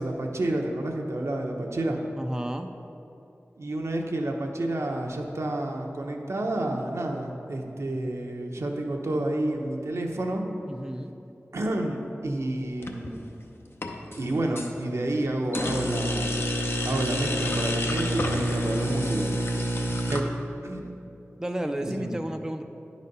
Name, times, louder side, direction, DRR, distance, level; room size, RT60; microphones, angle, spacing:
voice 1, 0.0-2.0 3.6-10.4 11.5-13.3 14.2-16.3 16.8-19.3 20.1-20.2 20.6-20.8 22.0-22.1, right 1 dB, 75° right, 1 dB, 0.8 m, -29 dB
voice 2, 2.2-2.7 10.7-11.1 20.1-20.3 21.4-22.6, right 1 dB, 10° right, 5 dB, 0.4 m, -32 dB
sound 1, 12.8-13.3 13.7-14.7 15.5-20.2, equal, 55° left, 0.7 m, -28 dB
9.9 x 4.2 x 5.3 m, 2.8 s
wide cardioid pair, 55°, 5 cm